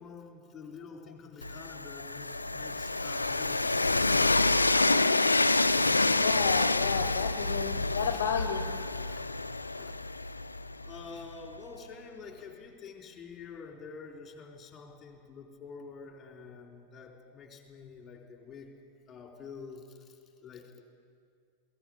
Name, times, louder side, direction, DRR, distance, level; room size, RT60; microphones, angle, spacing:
voice 1, 0.0-5.2 7.9-8.5 9.1-9.2 9.8-10.0 10.8-18.7 19.1-20.8, left 5 dB, 20° left, 2 dB, 3.8 m, -47 dB
Train, 1.4-11.3, left 2 dB, 80° left, 0.5 m, -28 dB
voice 2, 6.1-8.7, left 7 dB, 60° left, 8 dB, 1.0 m, -32 dB
22.0 x 17.5 x 8.7 m, 2.3 s
figure-of-eight pair, 90°, 0 cm